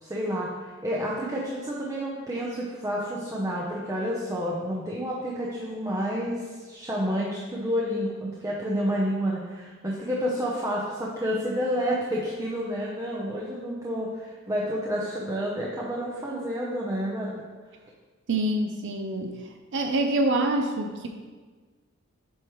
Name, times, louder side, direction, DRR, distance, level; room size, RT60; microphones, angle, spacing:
voice 1, 0.0-17.3, equal, 15° right, -4 dB, 0.7 m, -29 dB
voice 2, 18.3-19.3 19.7-21.1, right 1 dB, 60° right, 4 dB, 0.5 m, -25 dB
7.7 x 5.1 x 3.1 m, 1.4 s
head